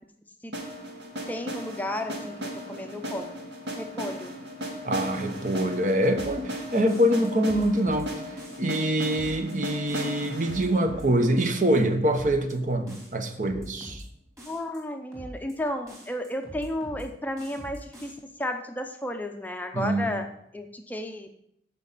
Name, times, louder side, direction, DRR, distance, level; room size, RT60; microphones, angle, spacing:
sound 1, 0.5-12.4, equal, 85° right, 1.9 m, -37 dB
voice 1, 1.3-2.4 2.7-3.3 3.8-4.3 14.5-18.1 18.4-20.3 20.5-21.3, left 1 dB, 10° left, 5 dB, 0.6 m, -33 dB
voice 2, 4.8-8.1 8.6-14.0 19.7-20.1, right 1 dB, 45° right, 7 dB, 0.9 m, -25 dB
sound 2, 6.1-6.5 6.9-8.1 8.4-8.8 9.1-9.5 9.9-11.1 11.4-11.8 12.1-12.5 12.9-14.1 14.4-14.8 15.1-15.5 15.9-17.1 17.4-18.1, equal, 20° right, 3.4 m, -44 dB
14.0 x 5.3 x 4.1 m, 0.73 s
head